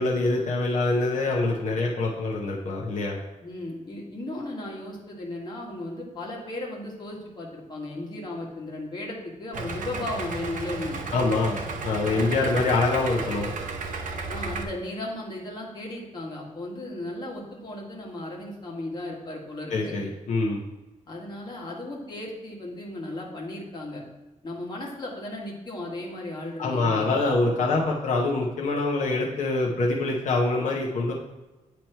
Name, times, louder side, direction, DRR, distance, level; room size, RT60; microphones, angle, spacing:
voice 1, 0.0-3.2 11.1-11.6 11.8-13.5 19.7-20.6 26.6-31.1, left 3 dB, 70° left, -2 dB, 0.9 m, -25 dB
voice 2, 3.4-11.2 12.0-12.6 14.3-19.9 21.1-24.0 24.4-27.3 29.6-29.8, left 1 dB, 35° left, -3 dB, 1.4 m, -36 dB
Idling, 9.5-14.6, right 3 dB, 80° right, 0.8 m, -33 dB
9.1 x 3.1 x 4.4 m, 1.1 s
wide cardioid pair, 170°, 13 cm